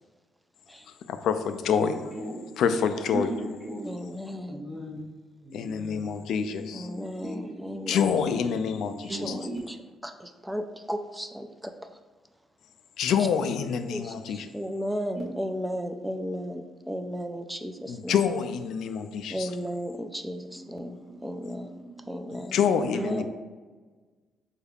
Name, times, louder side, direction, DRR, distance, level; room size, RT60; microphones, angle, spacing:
voice 1, 1.1-1.9 2.6-3.3 5.5-6.9 7.9-9.3 13.0-14.5 17.9-19.5 22.3-23.2, left 7 dB, 75° left, 9 dB, 0.3 m, -27 dB
voice 2, 1.7-2.5 3.1-4.0 4.3-5.0 5.4-6.0 6.4-9.6 20.5-23.2, right 1 dB, 40° right, -5 dB, 1.1 m, -39 dB
voice 3, 3.9-4.6 6.7-8.2 10.0-11.7 13.9-18.2 19.3-21.0 21.2-21.7 22.1-23.2, equal, 5° right, 6 dB, 0.3 m, -34 dB
4.4 x 2.4 x 3.4 m, 1.4 s
cardioid pair, 90°, 0 cm